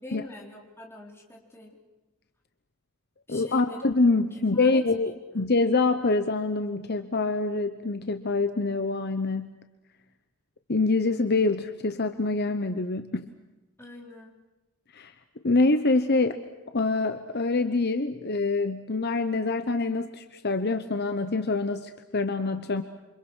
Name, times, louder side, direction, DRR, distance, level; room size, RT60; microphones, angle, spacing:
voice 1, 0.0-1.8 3.3-3.8 4.3-5.1 13.8-14.4, left 2 dB, 10° left, -2 dB, 4.2 m, -44 dB
voice 2, 3.3-9.5 10.7-13.3 14.9-15.1 15.4-16.4 16.7-22.8, left 3 dB, 45° left, 8 dB, 1.0 m, -25 dB
28.5 x 25.5 x 6.4 m, 1.1 s
head